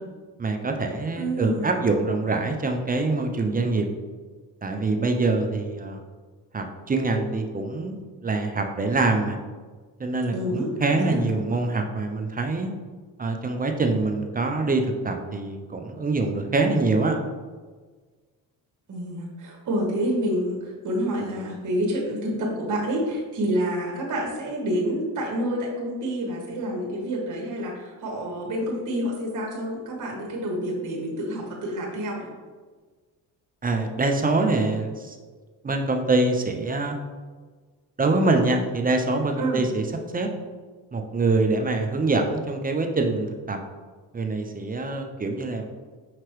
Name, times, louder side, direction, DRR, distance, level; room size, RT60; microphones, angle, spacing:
voice 1, 0.4-3.9 4.6-6.0 6.5-7.9 8.2-9.4 10.0-12.7 13.2-17.2 33.6-35.2 35.6-37.0 38.0-39.8 40.1-40.3 40.9-43.6 44.1-45.8, right 3 dB, 20° right, 4 dB, 0.5 m, -24 dB
voice 2, 1.1-1.7 10.3-11.3 18.9-32.3 39.3-39.6, equal, 45° right, -2 dB, 1.3 m, -28 dB
5.7 x 2.9 x 3.1 m, 1.4 s
supercardioid pair, 60°, 43 cm